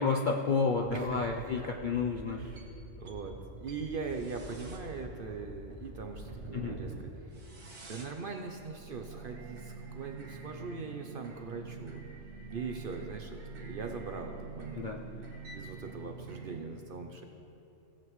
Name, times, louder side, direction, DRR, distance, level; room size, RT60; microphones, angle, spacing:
voice 1, 0.0-2.4 6.5-6.8 14.8-15.0, left 4 dB, 60° left, 1 dB, 0.5 m, -30 dB
sound 1, 0.7-16.7, right 2 dB, 85° right, 1.8 m, -46 dB
voice 2, 0.9-1.7 2.3-7.4 7.9-12.0 12.5-14.9 15.1-17.2, right 4 dB, 55° right, 4 dB, 0.6 m, -41 dB
17.5 x 7.6 x 3.1 m, 2.8 s
omnidirectional pair, 1.4 m